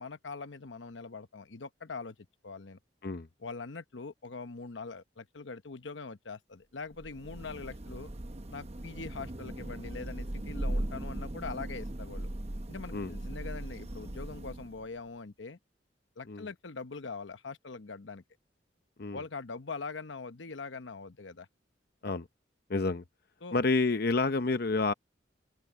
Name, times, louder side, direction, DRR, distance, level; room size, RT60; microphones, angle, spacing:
voice 1, 0.0-2.2 2.4-2.8 3.4-8.1 8.5-12.3 12.7-15.6 16.2-18.2 19.1-21.5 23.4-23.6, left 4 dB, 85° left, 1.0 m, -42 dB
Thunder / Rain, 6.9-15.0, right 1 dB, 35° right, 0.9 m, -38 dB
voice 2, 22.7-23.0 23.5-24.9, left 3 dB, 55° left, 0.7 m, -29 dB
open air
head